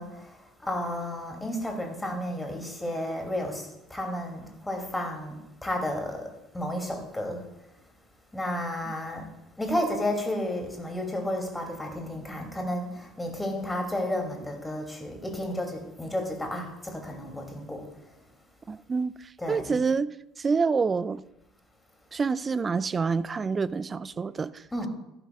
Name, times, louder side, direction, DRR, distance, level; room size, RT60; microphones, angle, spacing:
voice 1, 0.0-7.5 8.3-9.3 9.6-18.2 19.4-19.8 24.7-24.9, left 1 dB, 10° left, 3 dB, 2.5 m, -32 dB
voice 2, 18.7-21.2 22.1-24.6, right 5 dB, 25° right, 17 dB, 0.4 m, -27 dB
15.0 x 12.0 x 2.3 m, 0.88 s
figure-of-eight pair, 60°, 0 cm